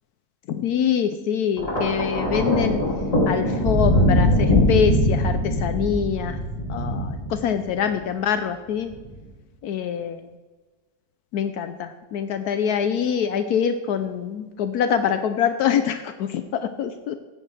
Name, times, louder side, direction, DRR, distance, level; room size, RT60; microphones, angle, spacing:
voice 1, 0.5-2.8 3.3-6.4 6.7-8.9 9.6-10.3 11.3-17.2, left 8 dB, 75° left, 9 dB, 1.1 m, -24 dB
Thunder, 1.6-7.9 8.9-9.2, left 1 dB, 20° left, 2.8 m, -22 dB
15.5 x 8.7 x 3.3 m, 1.2 s
omnidirectional pair, 1.7 m